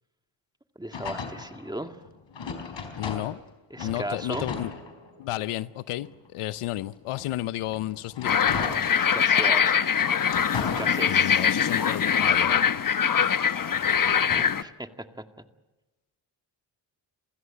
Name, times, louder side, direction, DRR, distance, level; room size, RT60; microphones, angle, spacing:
voice 1, 0.8-2.0 3.7-4.5 8.9-9.7 10.5-11.4 14.3-14.9 15.4-15.5, right 1 dB, 10° right, 2.1 m, -36 dB
sound 1, 0.9-3.5 3.8-5.4 6.0-9.5 9.9-11.5 12.0-14.6, left 5 dB, 60° left, 4.5 m, -38 dB
voice 2, 3.0-3.4 3.8-4.7 5.2-8.4 11.1-12.9 13.2-13.4, left 15 dB, 80° left, 0.8 m, -32 dB
sound 2, 4.3-6.3, right 3 dB, 90° right, 7.9 m, -50 dB
sound 3, 8.2-14.6, left 7 dB, 40° left, 1.1 m, -23 dB
27.5 x 16.0 x 9.1 m
supercardioid pair, 45°, 50 cm